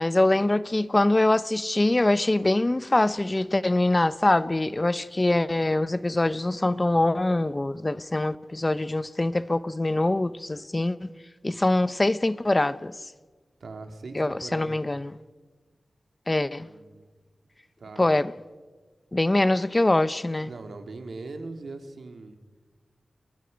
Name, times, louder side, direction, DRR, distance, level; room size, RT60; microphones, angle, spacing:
voice 1, 0.0-11.1 11.4-13.0 14.1-15.1 16.3-16.7 18.0-18.3 19.1-20.5, left 2 dB, 25° left, 0.7 m, -23 dB
voice 2, 13.6-14.8 16.6-17.1 17.8-18.0 20.4-22.4, right 3 dB, 80° right, 2.2 m, -40 dB
29.5 x 21.5 x 5.2 m
wide cardioid pair, 115°, 0 cm